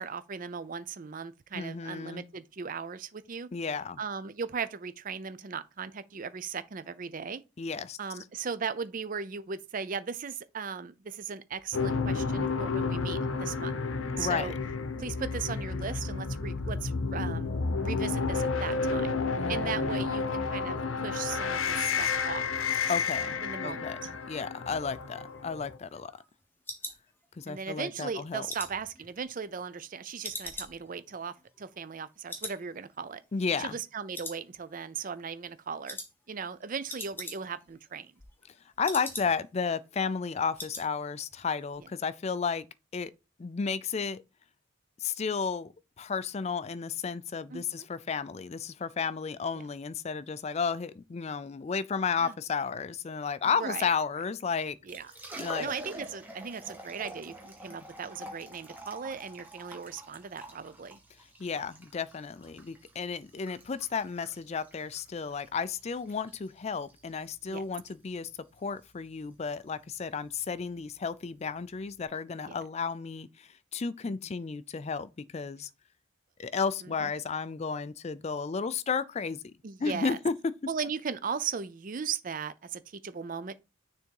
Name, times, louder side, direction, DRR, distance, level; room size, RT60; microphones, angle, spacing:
voice 1, 0.0-3.5 4.0-7.4 8.0-13.7 14.2-14.5 15.0-17.6 17.8-19.1 19.5-22.5 23.4-24.1 27.5-33.2 33.6-36.0 36.3-38.1 47.5-47.9 52.2-52.3 53.6-53.9 54.9-55.1 55.6-61.0 67.5-67.6 72.5-72.6 76.8-77.1 79.6-80.2 80.7-83.5, right 6 dB, 40° right, 0.4 m, -37 dB
voice 2, 1.5-2.3 3.5-4.0 7.6-8.0 14.2-14.5 19.4-20.1 22.9-26.1 27.4-28.5 33.3-33.8 38.8-42.7 42.9-43.1 43.4-44.2 45.0-45.7 46.0-54.8 55.4-55.7 61.4-68.3 68.6-75.7 76.4-79.5 79.8-80.3, left 5 dB, 30° left, 0.3 m, -33 dB
sound 1, 11.7-25.8, left 4 dB, 70° left, 0.7 m, -31 dB
sound 2, 25.0-27.7 28.1-29.9 30.2-32.0 32.3-32.6 32.9-33.0 33.5-33.9 34.1-34.9 35.2-35.5 35.9-36.1 36.4-36.5 36.7-37.7 38.0-39.6 39.9-40.0 40.3-40.9 41.2-41.5 41.7-41.8, left 2 dB, 10° left, 1.0 m, -42 dB
Liquid, 54.9-72.0, right 1 dB, 10° right, 1.3 m, -48 dB
6.6 x 3.5 x 4.6 m
head